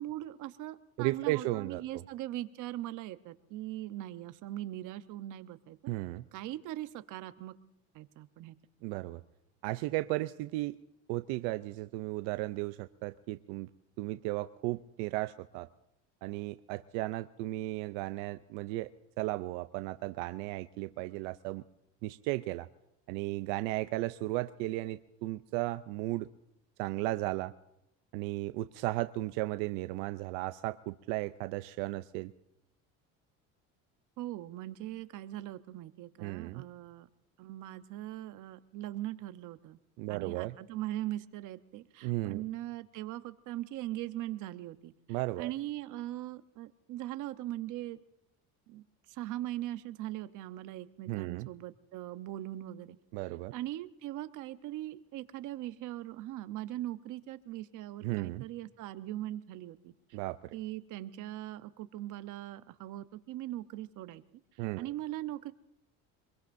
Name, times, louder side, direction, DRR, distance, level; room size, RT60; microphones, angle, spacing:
voice 1, 0.0-5.8 6.3-7.5 7.9-8.5 34.2-37.1 37.4-39.8 40.1-44.9 45.4-48.0 48.7-53.0 53.5-59.9 60.5-64.2 64.5-65.5, right 14 dB, 65° right, 11 dB, 0.9 m, -40 dB
voice 2, 1.0-1.8 5.9-6.2 8.8-9.2 9.6-10.8 11.1-13.7 14.0-15.7 16.2-18.9 19.2-21.6 22.0-22.7 23.1-26.3 26.8-27.5 28.1-32.3 36.2-36.6 40.0-40.5 42.0-42.4 45.1-45.5 51.1-51.5 53.1-53.5 58.0-58.4 60.1-60.6 64.6-64.9, right 18 dB, 90° right, 12 dB, 0.6 m, -35 dB
24.0 x 22.0 x 2.6 m, 0.85 s
cardioid pair, 115°, 34 cm